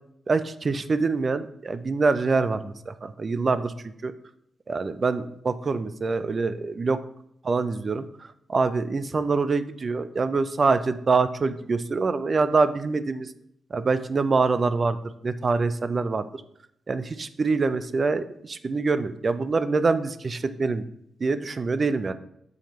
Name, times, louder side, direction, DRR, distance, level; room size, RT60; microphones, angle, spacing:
voice 1, 0.3-3.7 4.0-4.1 4.7-7.0 7.4-8.1 8.5-13.3 13.7-15.0 15.2-16.3 16.9-20.8 21.2-22.1, right 4 dB, 40° right, 13 dB, 0.4 m, -25 dB
7.0 x 4.3 x 3.1 m, 0.74 s
cardioid pair, 85°, 0 cm